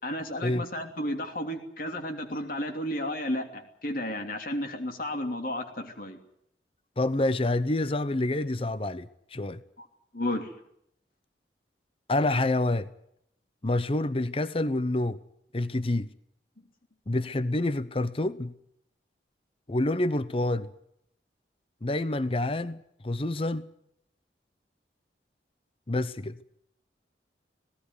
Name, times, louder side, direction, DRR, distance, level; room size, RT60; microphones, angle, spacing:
voice 1, 0.0-6.2 9.8-9.9 10.1-10.5, left 1 dB, 50° left, 3.0 m, -32 dB
voice 2, 7.0-9.6 12.1-12.9 13.6-15.2 15.5-16.1 17.1-18.5 19.7-20.7 21.8-22.8 23.0-23.7 25.9-26.4, left 2 dB, 30° left, 0.7 m, -27 dB
18.5 x 17.0 x 9.6 m
head